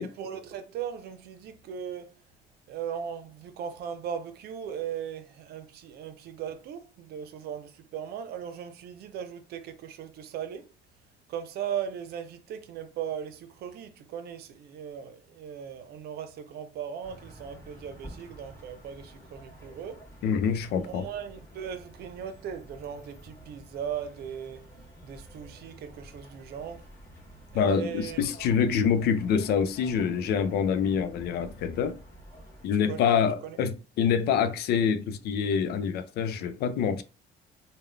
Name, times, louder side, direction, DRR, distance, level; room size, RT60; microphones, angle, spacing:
voice 1, 0.0-2.2 2.7-10.7 11.3-20.1 20.9-24.7 25.0-26.9 27.5-28.3 32.9-33.6, right 8 dB, 70° right, 0.6 m, -38 dB
sound 1, 17.0-32.7, right 1 dB, 15° left, 1.5 m, -50 dB
voice 2, 20.2-21.1 27.5-32.0 32.6-37.0, left 7 dB, 70° left, 0.5 m, -26 dB
3.6 x 2.2 x 3.3 m
cardioid pair, 110°, 17 cm